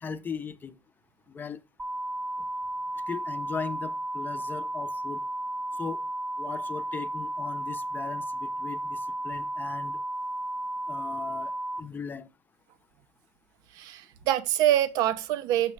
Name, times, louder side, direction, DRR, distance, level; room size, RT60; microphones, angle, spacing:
voice 1, 0.0-0.8 1.3-1.6 3.1-5.2 5.7-6.0 6.4-10.0 10.9-12.3, left 6 dB, 30° left, 0.7 m, -38 dB
sound 1, 1.8-11.8, right 1 dB, 15° right, 0.8 m, -33 dB
voice 2, 13.7-15.7, right 12 dB, 65° right, 0.6 m, -25 dB
6.5 x 6.1 x 3.2 m
supercardioid pair, 85°, 7 cm